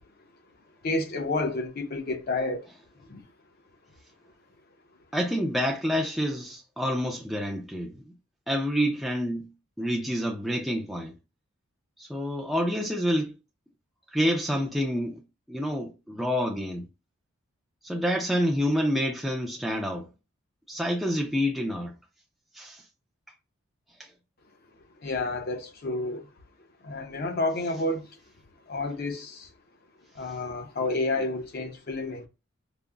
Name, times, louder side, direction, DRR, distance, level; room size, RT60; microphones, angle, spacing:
voice 1, 0.8-2.7 3.1-3.2 25.0-26.3 26.8-28.1 28.7-29.5 30.1-32.3, left 2 dB, 45° left, 0.6 m, -30 dB
voice 2, 5.1-8.1 8.5-9.5 9.8-11.1 12.0-13.3 14.1-15.2 15.5-16.8 17.8-20.1 20.7-21.9 22.5-22.8 24.0-24.1, equal, ahead, 0.4 m, -28 dB
5.1 x 2.0 x 2.3 m
head